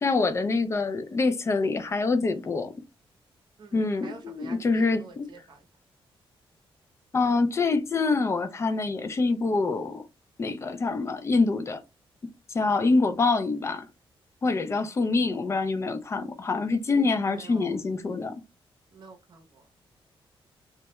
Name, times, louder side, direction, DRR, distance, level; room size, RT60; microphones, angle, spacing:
voice 1, 0.0-2.7 3.7-5.3 7.1-10.0 10.4-11.8 12.5-13.9 14.4-18.3, left 3 dB, 30° left, 0.3 m, -25 dB
voice 2, 3.6-5.7 12.7-12.9 16.9-17.8 18.9-19.7, right 4 dB, 50° right, 0.6 m, -48 dB
2.2 x 2.1 x 2.8 m
wide cardioid pair, 130°, 10 cm